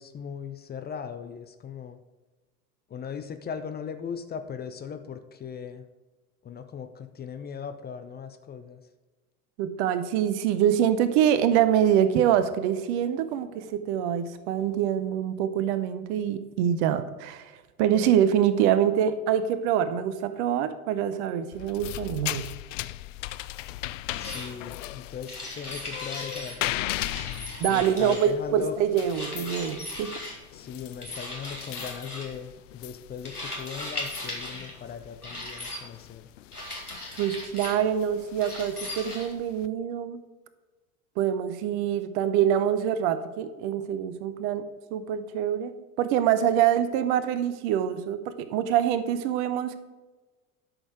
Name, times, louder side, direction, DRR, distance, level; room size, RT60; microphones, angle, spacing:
voice 1, 0.0-2.0 2.9-5.8 6.4-8.8 24.2-26.9 27.7-28.8 30.5-36.3, left 7 dB, 20° left, 8 dB, 0.8 m, -38 dB
voice 2, 9.6-22.5 27.6-30.1 37.2-40.2 41.2-49.8, right 9 dB, 50° right, 12 dB, 1.0 m, -25 dB
sound 1, 21.5-39.7, left 15 dB, 55° left, 0.5 m, -39 dB
sound 2, 24.1-24.5 25.3-26.6 27.0-28.4 29.1-30.4 31.0-32.3 33.2-34.7 35.2-35.8 36.5-37.8 38.4-39.2, left 1 dB, 90° left, 2.2 m, -37 dB
12.0 x 6.5 x 4.8 m, 1.2 s
figure-of-eight pair, 75°, 44 cm